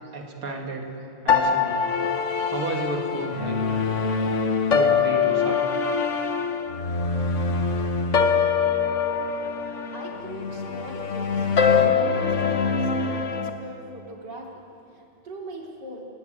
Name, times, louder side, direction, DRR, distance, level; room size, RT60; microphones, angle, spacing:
voice 1, 0.1-0.9 1.2-1.8 2.5-3.8 4.7-5.8, right 3 dB, 80° right, 1 dB, 3.6 m, -32 dB
sound 1, 1.3-13.5, left 5 dB, 40° left, 1.3 m, -23 dB
voice 2, 9.9-14.6 14.9-16.1, right 1 dB, 55° right, -1 dB, 4.1 m, -40 dB
29.5 x 17.5 x 9.4 m, 2.7 s
omnidirectional pair, 2.3 m